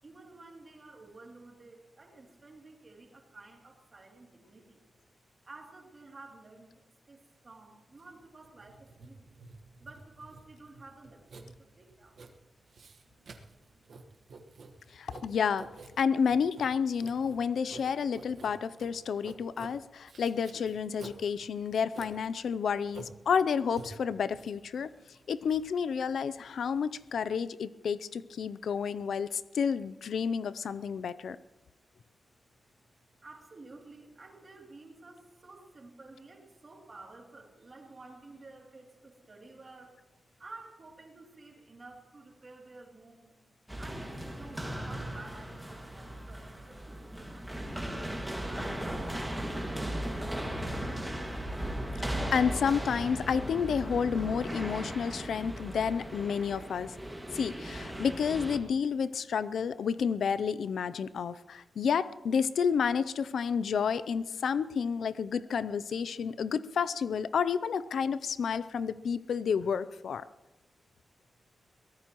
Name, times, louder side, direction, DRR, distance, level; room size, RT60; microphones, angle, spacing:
voice 1, 0.0-4.8 5.4-9.3 9.8-12.2 33.2-40.0 40.4-43.3 43.8-47.9 48.4-50.5, right 3 dB, 30° right, 0 dB, 2.8 m, -52 dB
Writing, 7.9-27.1, right 3 dB, 60° right, 1.3 m, -51 dB
voice 2, 14.9-15.7 16.0-24.9 25.3-31.4 52.0-56.9 57.3-70.3, left 6 dB, 75° left, 15 dB, 0.5 m, -30 dB
sound 1, 43.7-58.6, right 1 dB, 5° right, 2.0 m, -37 dB
23.0 x 17.5 x 3.0 m, 1.1 s
wide cardioid pair, 160°, 0 cm